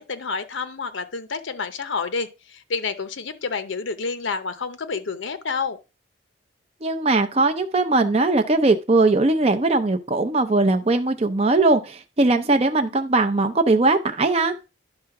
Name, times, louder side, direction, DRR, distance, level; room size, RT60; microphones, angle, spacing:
voice 1, 0.0-5.8, left 4 dB, 70° left, 0.7 m, -29 dB
voice 2, 6.8-14.5, right 2 dB, 30° right, 0.5 m, -20 dB
10.5 x 3.6 x 5.8 m
head